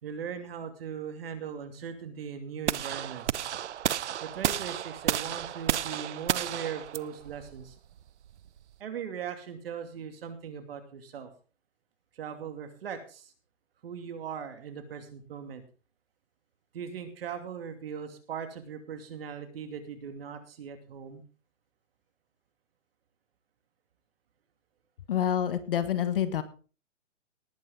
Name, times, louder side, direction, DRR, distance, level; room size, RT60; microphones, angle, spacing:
voice 1, 0.0-3.4 4.2-7.7 8.8-11.3 12.2-13.3 13.8-15.6 16.7-21.2, right 7 dB, 50° right, 7 dB, 2.7 m, -39 dB
sound 1, 2.7-8.7, right 10 dB, 65° right, 0.7 m, -32 dB
voice 2, 25.1-26.4, left 9 dB, 45° left, 12 dB, 1.6 m, -27 dB
19.0 x 8.9 x 3.9 m, 0.36 s
hypercardioid pair, 155°, 37 cm